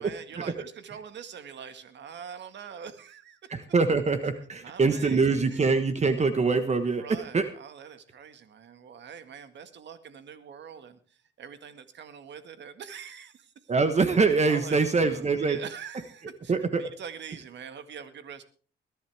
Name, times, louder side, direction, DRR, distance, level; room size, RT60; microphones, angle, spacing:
voice 1, 0.0-3.6 4.6-5.7 6.9-13.7 14.5-18.4, right 7 dB, 65° right, 10 dB, 1.9 m, -44 dB
voice 2, 3.5-7.0 7.3-7.4 13.7-15.6 16.5-16.8, right 4 dB, 35° right, 9 dB, 1.4 m, -24 dB
21.5 x 11.5 x 3.5 m, 0.39 s
cardioid pair, 90°, 20 cm